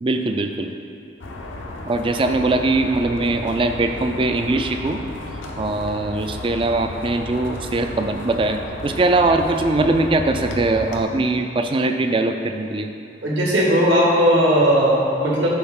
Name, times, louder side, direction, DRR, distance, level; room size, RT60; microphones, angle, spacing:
voice 1, 0.0-0.7 1.9-5.0 5.6-12.9, right 2 dB, 25° right, 6 dB, 0.3 m, -21 dB
sound 1, 1.2-11.0, left 2 dB, 80° left, 0.7 m, -33 dB
voice 2, 13.2-15.5, equal, 75° right, -4 dB, 1.6 m, -17 dB
11.0 x 3.9 x 3.7 m, 2.7 s
head